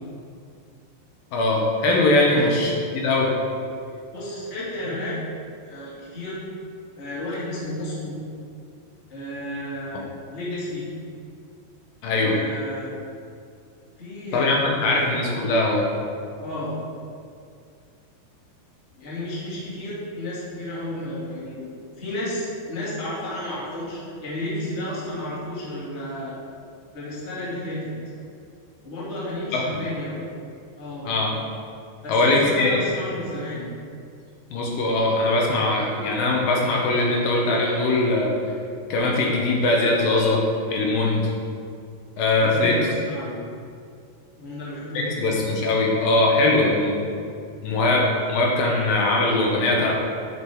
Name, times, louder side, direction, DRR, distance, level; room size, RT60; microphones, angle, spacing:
voice 1, 1.3-3.3 12.0-12.4 14.3-15.8 29.5-29.8 31.0-31.3 32.1-32.8 34.5-38.3 38.9-41.3 42.2-42.8 44.9-47.0 47.6-49.9, left 2 dB, 70° left, -2 dB, 2.4 m, -21 dB
voice 2, 4.1-5.2 5.6-6.4 7.0-8.1 9.1-10.0 10.3-10.9 12.2-12.9 14.0-15.2 16.4-16.7 19.0-21.6 22.0-26.4 26.9-27.9 28.8-30.2 30.7-31.1 32.0-33.7 42.4-43.4 44.4-45.3, left 1 dB, 25° left, -8 dB, 1.7 m, -32 dB
11.0 x 5.3 x 4.8 m, 2.4 s
omnidirectional pair, 5.1 m